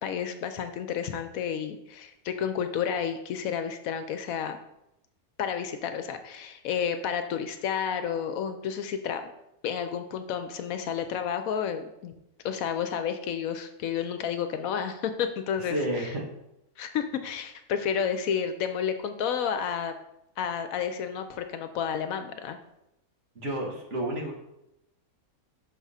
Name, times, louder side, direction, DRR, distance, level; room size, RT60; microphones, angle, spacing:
voice 1, 0.0-4.6 5.4-9.3 9.6-12.1 12.4-15.8 16.8-19.9 20.4-22.6, left 8 dB, 75° left, 8 dB, 1.0 m, -31 dB
voice 2, 15.6-16.3 23.4-24.3, right 1 dB, 55° right, -1 dB, 1.9 m, -31 dB
6.3 x 3.6 x 5.6 m, 0.86 s
omnidirectional pair, 1.5 m